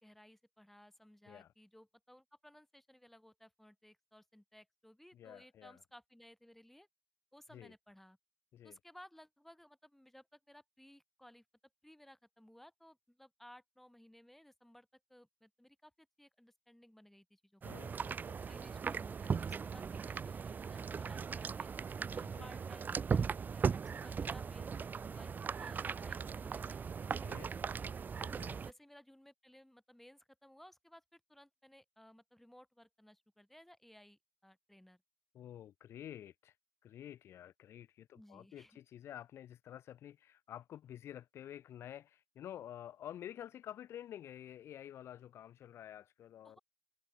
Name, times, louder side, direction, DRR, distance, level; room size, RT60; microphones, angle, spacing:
voice 1, 0.0-6.9 7.3-8.2 8.6-11.4 11.8-18.0 18.4-21.7 22.1-26.8 27.1-27.9 28.5-35.0 38.1-38.8 46.4-46.6, left 1 dB, 5° left, 4.3 m, -60 dB
voice 2, 5.1-5.8 7.5-7.7 8.5-8.8 17.6-18.6 22.2-22.5 27.1-27.5 28.2-28.6 35.3-36.5 36.8-46.6, left 11 dB, 80° left, 3.9 m, -50 dB
sound 1, 17.6-28.7, right 6 dB, 45° right, 0.5 m, -38 dB
cardioid pair, 70°, 4 cm